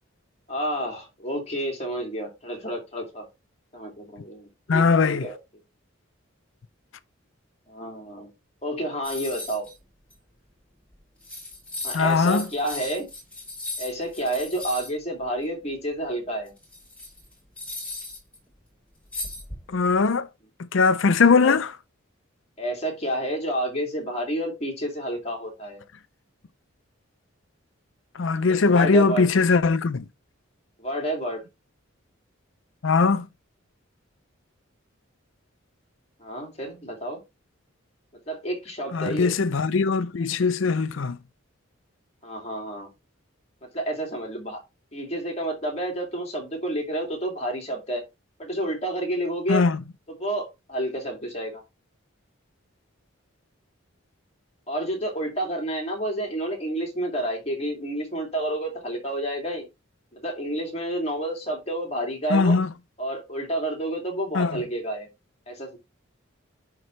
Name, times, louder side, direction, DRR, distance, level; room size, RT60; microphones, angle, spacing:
voice 1, 0.5-3.2 3.7-5.4 7.7-8.3 8.6-9.7 11.8-13.1 13.8-16.5 21.4-21.6 22.6-25.8 28.5-29.3 30.8-31.5 36.2-37.2 38.3-39.3 42.2-42.9 43.7-44.6 44.9-48.0 48.4-49.6 50.1-51.6 54.7-59.7 60.1-62.6 63.0-65.1 65.5-65.8, right 1 dB, 30° left, 2.5 m, -30 dB
voice 2, 4.7-5.2 11.9-12.4 19.7-20.3 20.7-21.7 28.2-30.0 32.8-33.2 38.9-41.2 49.5-49.8 62.3-62.7 64.4-64.5, left 4 dB, 70° left, 0.5 m, -20 dB
sound 1, 9.0-9.7 10.1-10.2 10.9-11.0 11.2-14.9 16.5-18.4 19.1-19.9, left 2 dB, 5° left, 3.4 m, -36 dB
10.5 x 3.8 x 3.2 m
head